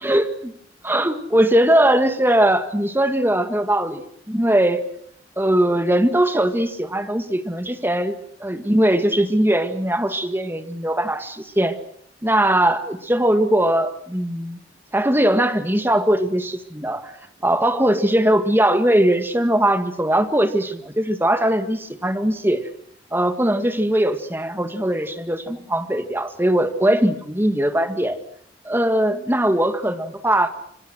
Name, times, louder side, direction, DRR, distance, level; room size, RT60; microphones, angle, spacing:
voice 1, 0.0-0.5 0.8-4.9 5.4-11.8 12.2-14.6 14.9-17.1 17.4-22.7 23.1-28.2 28.6-30.5, right 1 dB, 10° right, 8 dB, 1.9 m, -20 dB
26.0 x 23.5 x 6.2 m, 0.65 s
head